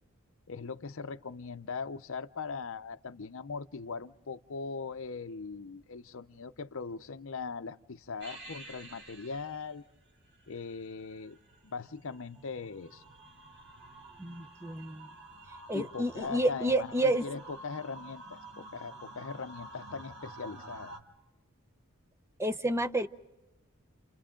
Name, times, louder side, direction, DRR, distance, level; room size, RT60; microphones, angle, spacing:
voice 1, 0.5-9.8 10.5-11.4 11.6-13.0 15.7-20.9, left 4 dB, 60° left, 10 dB, 0.7 m, -40 dB
sound 1, 8.2-21.0, right 2 dB, 50° right, 2.2 m, -50 dB
voice 2, 14.2-15.1 15.7-17.3 22.4-23.1, right 1 dB, 10° right, 8 dB, 0.7 m, -29 dB
29.5 x 29.5 x 3.8 m, 1.1 s
head